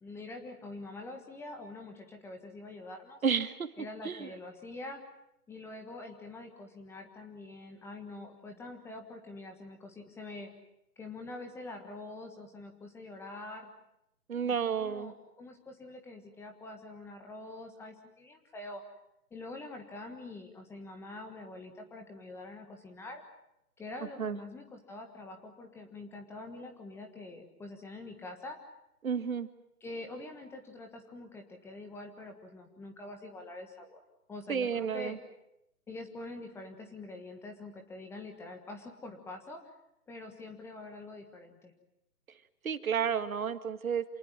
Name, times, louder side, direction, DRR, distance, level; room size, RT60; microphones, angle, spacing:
voice 1, 0.0-3.2 3.8-5.0 5.5-10.5 11.0-13.7 14.4-18.8 19.3-23.2 23.8-28.6 29.8-34.0 34.3-35.2 35.9-39.7 40.1-41.7, left 2 dB, 5° left, 4 dB, 1.5 m, -45 dB
voice 2, 3.2-3.7 4.0-4.3 14.3-15.1 24.2-24.4 29.0-29.5 34.5-35.2 42.6-44.0, right 7 dB, 60° right, 11 dB, 2.0 m, -31 dB
27.5 x 19.5 x 9.2 m, 0.81 s
figure-of-eight pair, 145°, 46 cm